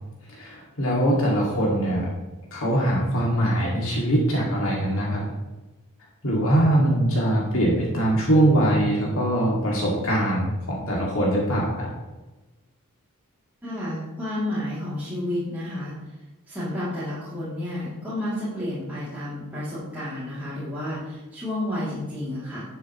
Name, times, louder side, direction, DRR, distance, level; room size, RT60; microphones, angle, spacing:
voice 1, 0.3-2.1 2.5-5.2 6.2-11.9, right 1 dB, 65° left, -3 dB, 2.3 m, -22 dB
voice 2, 13.6-15.9 16.5-22.6, left 1 dB, 10° right, -12 dB, 2.9 m, -31 dB
11.5 x 6.9 x 3.1 m, 1.1 s
head